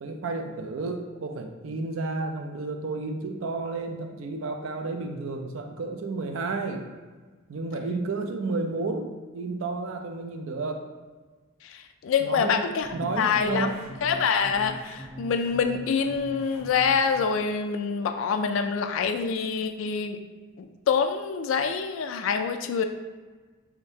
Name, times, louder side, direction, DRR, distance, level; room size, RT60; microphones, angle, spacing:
voice 1, 0.0-6.8 7.5-10.9 12.2-12.6 12.9-13.8, right 3 dB, 70° right, 4 dB, 0.5 m, -31 dB
voice 2, 11.6-13.7 14.0-20.2 20.6-22.8, left 6 dB, 65° left, 6 dB, 0.3 m, -26 dB
sound 1, 12.8-17.2, equal, 10° right, 0.8 m, -42 dB
3.6 x 3.4 x 2.8 m, 1.4 s
head